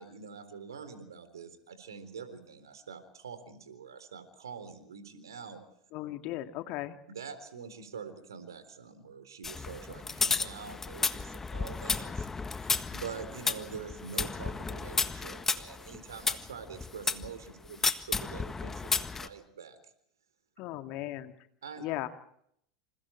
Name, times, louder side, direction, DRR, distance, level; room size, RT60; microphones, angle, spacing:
voice 1, 0.0-5.6 7.1-12.3 12.9-19.8 21.6-21.9, right 6 dB, 75° right, 11 dB, 3.9 m, -45 dB
voice 2, 5.9-7.0 20.6-21.3 21.8-22.1, left 15 dB, 50° left, 8 dB, 2.0 m, -36 dB
sound 1, 9.4-17.3 17.8-19.3, left 4 dB, 15° left, 1.6 m, -33 dB
28.5 x 28.0 x 4.6 m, 0.71 s
figure-of-eight pair, 80°, 2 cm